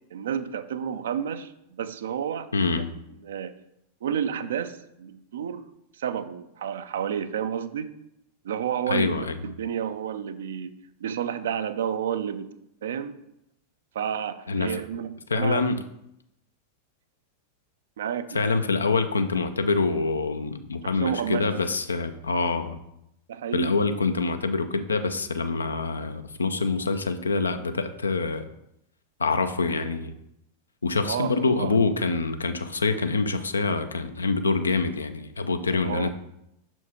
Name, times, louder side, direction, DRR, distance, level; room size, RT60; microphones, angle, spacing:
voice 1, 0.1-2.5 2.8-2.9 3.2-3.6 4.0-5.7 5.9-7.9 8.4-12.5 12.8-13.2 13.9-15.6 18.0-18.5 20.8-21.6 23.3-23.8 31.1-31.8 35.7-36.1, right 8 dB, 60° right, 11 dB, 0.4 m, -31 dB
voice 2, 2.5-2.9 8.9-9.4 14.5-14.8 15.3-15.8 18.3-22.8 23.5-28.4 29.2-30.1 30.8-36.1, left 3 dB, 75° left, 9 dB, 0.5 m, -25 dB
6.3 x 4.5 x 4.3 m, 0.81 s
figure-of-eight pair, 90°, 0 cm